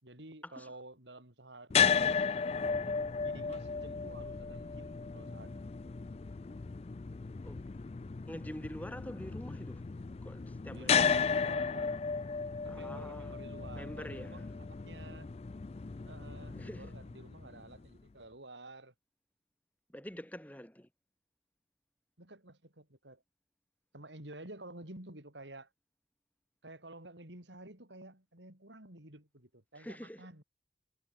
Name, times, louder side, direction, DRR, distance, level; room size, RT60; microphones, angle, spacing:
voice 1, 0.0-2.1 2.9-5.6 10.7-12.0 12.6-15.3 16.1-18.9 22.2-23.2 23.9-25.7 26.6-30.4, right 2 dB, 90° right, 6.0 m, -51 dB
sound 1, 1.7-17.9, left 6 dB, 35° left, 0.4 m, -34 dB
voice 2, 8.3-9.8 10.2-11.0 12.7-13.3 13.8-14.5 16.5-16.9 19.9-20.9 29.8-30.3, equal, 10° left, 4.1 m, -46 dB
head